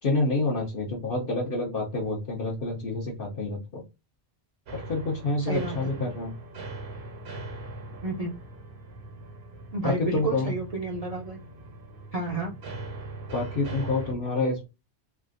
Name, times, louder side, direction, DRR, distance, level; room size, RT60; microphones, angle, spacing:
voice 1, 0.0-3.8 4.7-6.3 9.8-10.5 13.3-14.7, left 3 dB, 55° left, -3 dB, 0.9 m, -28 dB
sound 1, 4.7-14.1, right 2 dB, 70° right, 1.1 m, -40 dB
voice 2, 5.4-5.9 8.0-8.3 9.7-11.4 12.1-12.5, right 3 dB, 45° right, -2 dB, 0.6 m, -31 dB
3.4 x 2.4 x 2.4 m, 0.25 s
omnidirectional pair, 1.1 m